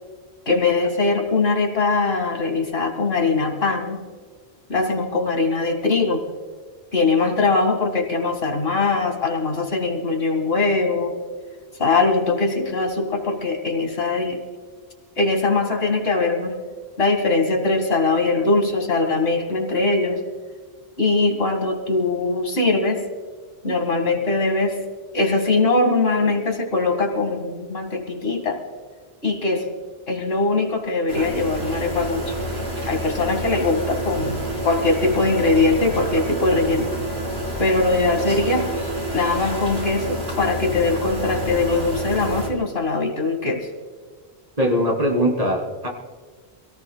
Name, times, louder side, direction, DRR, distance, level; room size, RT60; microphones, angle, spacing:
voice 1, 0.5-4.0 4.7-6.2 6.9-11.2 11.8-14.4 15.2-16.6 17.0-20.2 21.0-23.0 23.6-24.8 25.1-28.6 29.2-29.7 30.1-32.3 32.9-36.9 37.6-38.7 39.1-43.7, left 3 dB, 70° left, 4 dB, 2.2 m, -21 dB
sound 1, 31.1-42.5, right 1 dB, 80° right, 4.3 m, -28 dB
voice 2, 44.6-45.9, equal, 35° right, 0 dB, 3.2 m, -21 dB
26.0 x 17.5 x 2.3 m, 1.5 s
omnidirectional pair, 1.1 m